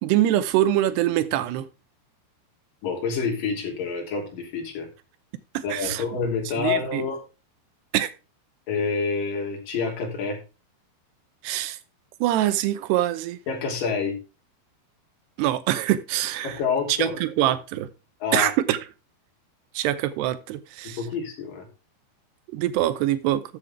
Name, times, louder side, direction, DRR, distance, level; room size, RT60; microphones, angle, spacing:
voice 1, 0.0-1.7 5.5-6.0 6.6-7.0 7.9-8.1 11.4-11.8 12.2-13.4 15.4-16.6 16.9-17.9 18.3-18.8 19.7-21.0 22.5-23.4, right 13 dB, 80° right, 2.6 m, -24 dB
voice 2, 2.8-4.9 5.6-7.2 8.7-10.4 13.5-14.2 16.4-17.2 18.2-18.5 21.0-21.7, left 5 dB, 50° left, 4.4 m, -27 dB
13.5 x 8.0 x 3.5 m
omnidirectional pair, 5.3 m